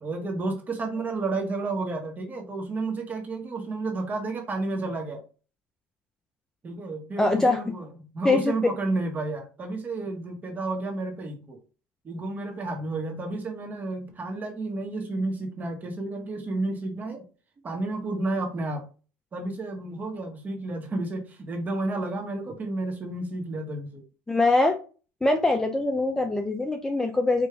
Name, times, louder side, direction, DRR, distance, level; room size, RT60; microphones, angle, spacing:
voice 1, 0.0-5.2 6.6-11.6 12.0-17.2 17.6-18.9 19.3-24.0, right 2 dB, 25° right, 1.2 m, -31 dB
voice 2, 7.2-7.6 8.2-8.5 24.3-24.7 25.2-27.5, left 2 dB, 10° left, 0.5 m, -23 dB
5.0 x 2.6 x 3.3 m
cardioid pair, 120°, 6 cm